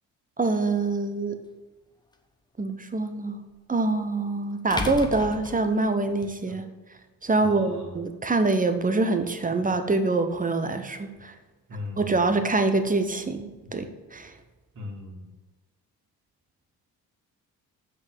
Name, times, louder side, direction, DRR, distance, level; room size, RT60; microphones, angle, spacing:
voice 1, 0.4-1.4 2.6-3.4 3.7-6.7 7.2-11.3 12.0-14.3, right 3 dB, 15° right, 8 dB, 1.1 m, -25 dB
sound 1, 0.9-1.0 3.5-3.6 4.7-6.3, left 3 dB, 10° left, 1.1 m, -33 dB
voice 2, 7.4-8.0 11.7-12.3 14.7-15.3, left 2 dB, 35° right, -1 dB, 2.9 m, -39 dB
7.8 x 6.4 x 8.1 m, 1.2 s
figure-of-eight pair, 45°, 49 cm